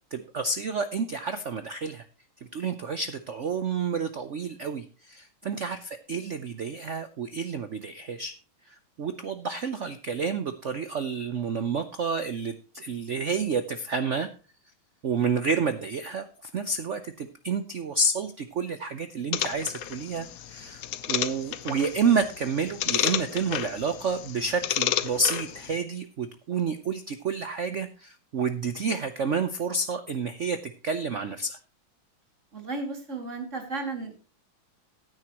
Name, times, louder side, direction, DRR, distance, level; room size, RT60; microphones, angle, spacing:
voice 1, 0.1-2.0 2.5-8.3 8.7-14.3 15.0-16.3 16.5-20.8 21.1-31.6, right 4 dB, 75° right, 10 dB, 0.6 m, -29 dB
sound 1, 19.3-25.8, left 11 dB, 70° left, 0.8 m, -32 dB
voice 2, 32.5-34.2, right 3 dB, 35° right, 4 dB, 2.6 m, -34 dB
15.5 x 9.5 x 2.9 m, 0.35 s
omnidirectional pair, 2.3 m